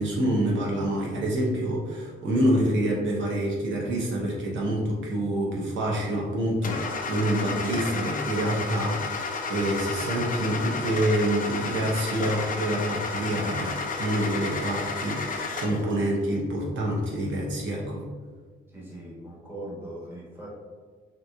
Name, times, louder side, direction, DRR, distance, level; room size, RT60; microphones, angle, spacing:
voice 1, 0.0-18.1, right 1 dB, 70° right, -3 dB, 0.8 m, -27 dB
Car / Engine starting, 6.6-15.9, left 4 dB, 45° left, 0.5 m, -32 dB
voice 2, 18.7-20.5, right 1 dB, 10° right, -7 dB, 1.4 m, -40 dB
3.7 x 3.0 x 2.3 m, 1.5 s
cardioid pair, 90°, 20 cm